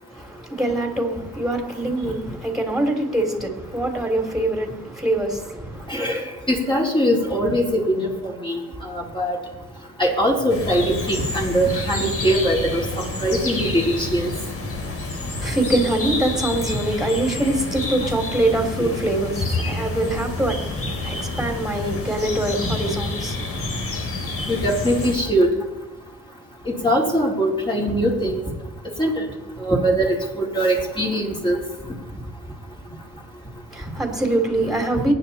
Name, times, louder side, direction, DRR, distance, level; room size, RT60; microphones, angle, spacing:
voice 1, 0.1-5.9 15.4-23.6 33.7-35.1, right 1 dB, ahead, 3.6 m, -24 dB
voice 2, 5.9-8.6 8.9-9.4 10.0-12.8 13.2-14.3 24.5-25.5 26.8-28.4 29.0-29.2 29.6-31.6, equal, 15° left, 4.1 m, -21 dB
sound 1, 10.5-25.2, left 2 dB, 50° left, 3.8 m, -29 dB
24.0 x 9.7 x 4.4 m
cardioid pair, 90°, 30 cm